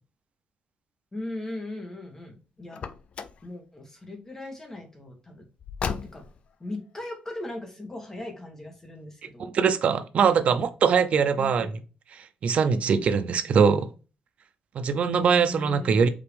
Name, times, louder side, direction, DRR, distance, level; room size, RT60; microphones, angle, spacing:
voice 1, 1.1-2.8 3.4-5.4 6.1-6.2 6.6-9.5 10.5-10.6 11.4-11.8 15.2-16.1, left 2 dB, 20° left, 1.3 m, -38 dB
Car, 2.7-3.5 5.6-6.5, left 6 dB, 45° left, 0.4 m, -34 dB
voice 2, 9.4-11.7 12.1-13.9 14.7-16.1, right 6 dB, 50° right, 0.6 m, -22 dB
5.0 x 2.9 x 3.4 m
cardioid pair, 145°, 3 cm